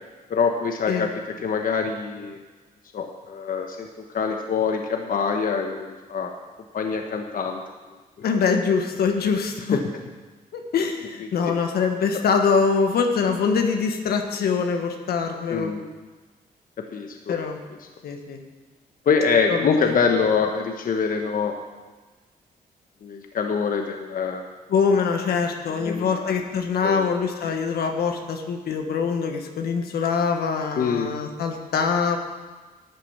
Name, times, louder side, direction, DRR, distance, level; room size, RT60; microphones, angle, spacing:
voice 1, 0.3-1.1 1.4-2.4 2.9-3.9 4.1-6.3 6.7-7.6 9.7-9.8 11.2-11.6 12.1-12.2 15.5-15.8 16.9-17.3 19.0-21.5 23.0-24.4 25.8-26.4 26.8-27.1 27.4-27.5 30.8-31.1, left 5 dB, 60° left, 3 dB, 1.2 m, -24 dB
voice 2, 8.2-9.8 10.5-15.7 17.3-17.6 18.0-18.4 19.5-19.9 24.7-32.2, left 5 dB, 80° left, 4 dB, 1.4 m, -24 dB
12.0 x 8.5 x 7.2 m, 1.3 s
cardioid pair, 80°, 16 cm